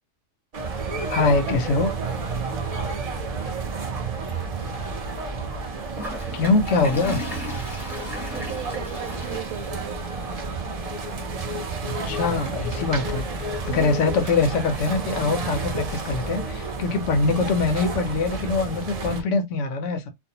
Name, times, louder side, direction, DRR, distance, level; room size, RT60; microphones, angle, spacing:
sound 1, 0.5-19.2, right 4 dB, 50° right, 0.4 m, -31 dB
voice 1, 1.1-1.9 6.3-7.2 11.9-13.3 13.6-20.1, left 3 dB, 70° left, 0.8 m, -23 dB
voice 2, 3.5-4.5 6.2-6.4 7.9-10.0 13.7-14.1, right 10 dB, 80° right, 1.0 m, -39 dB
Toilet flush, 5.9-11.0, left 1 dB, ahead, 0.8 m, -37 dB
sound 2, 7.7-14.4, left 10 dB, 45° left, 0.4 m, -39 dB
2.5 x 2.0 x 2.7 m
omnidirectional pair, 1.4 m